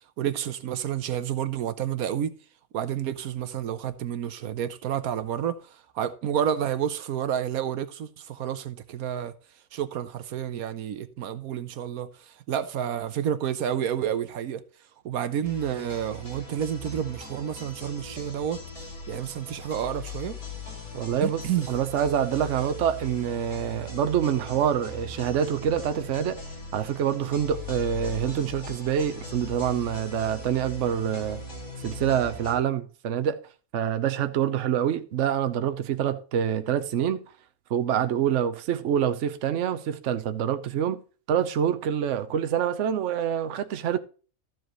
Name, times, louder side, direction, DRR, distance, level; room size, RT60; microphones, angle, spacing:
voice 1, 0.2-2.3 2.7-9.3 9.7-14.6 15.0-18.6 19.1-20.4 21.2-21.7, right 9 dB, 85° right, 1.3 m, -30 dB
sound 1, 15.4-32.6, left 2 dB, 75° left, 4.0 m, -40 dB
voice 2, 20.9-21.4 21.7-26.4 26.7-31.4 31.8-33.4 33.7-37.2 37.7-41.0 41.3-44.0, right 9 dB, 60° right, 1.0 m, -26 dB
13.5 x 7.6 x 3.0 m
omnidirectional pair, 1.5 m